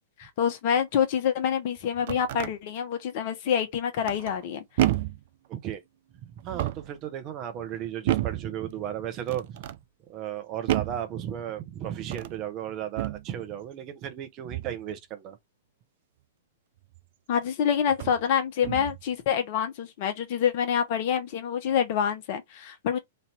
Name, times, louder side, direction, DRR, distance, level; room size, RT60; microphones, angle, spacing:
voice 1, 0.2-4.6 17.3-23.0, left 8 dB, 50° left, 1.2 m, -26 dB
sound 1, 1.8-2.5 4.0-4.4 4.8-5.3 6.4-7.0 8.1-8.5 9.3-9.8 10.7-11.1 12.0-12.4 13.0-13.3 14.5-14.8 16.9-17.0 17.9-18.2 18.6-19.0, right 14 dB, 55° right, 0.5 m, -30 dB
voice 2, 5.5-5.8 6.2-9.7 10.1-15.4, right 10 dB, 35° right, 1.0 m, -35 dB
3.3 x 2.8 x 4.2 m
hypercardioid pair, 115°, 0 cm